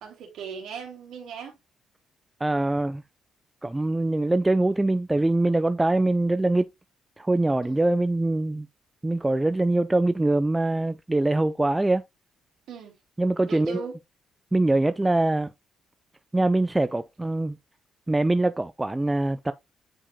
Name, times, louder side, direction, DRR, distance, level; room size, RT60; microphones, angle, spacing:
voice 1, 0.0-1.6 7.6-7.9 12.7-13.0 13.5-14.0, right 6 dB, 80° right, 2.6 m, -38 dB
voice 2, 2.4-3.0 3.6-6.7 7.2-8.7 9.0-12.0 13.2-13.8 14.5-15.5 16.3-17.6 18.1-19.5, right 2 dB, 15° right, 0.4 m, -23 dB
8.8 x 4.8 x 2.2 m
cardioid pair, 90°, 0 cm